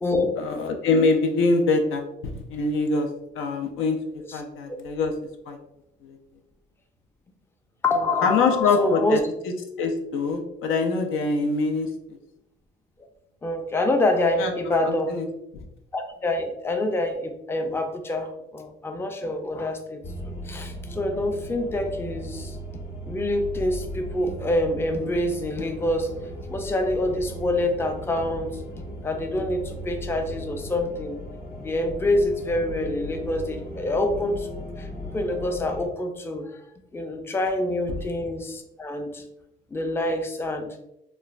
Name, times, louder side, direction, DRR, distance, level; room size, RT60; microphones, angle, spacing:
voice 1, 0.4-3.1 3.4-5.1 5.5-5.6 6.0-6.2 8.2-9.2 9.8-11.9 14.4-14.5 14.8-15.2 15.5-15.7, left 3 dB, 90° left, 4 dB, 0.4 m, -24 dB
voice 2, 7.8-9.2 13.4-15.2 15.9-22.6 23.1-26.1 26.5-28.5 29.0-31.2 31.6-34.5 34.8-34.9 35.1-36.6 36.9-39.2 39.7-40.8, left 1 dB, 10° left, 5 dB, 0.4 m, -26 dB
sound 1, 20.0-35.9, equal, 50° left, 0.7 m, -37 dB
3.0 x 2.1 x 2.4 m, 0.85 s
cardioid pair, 90°, 20 cm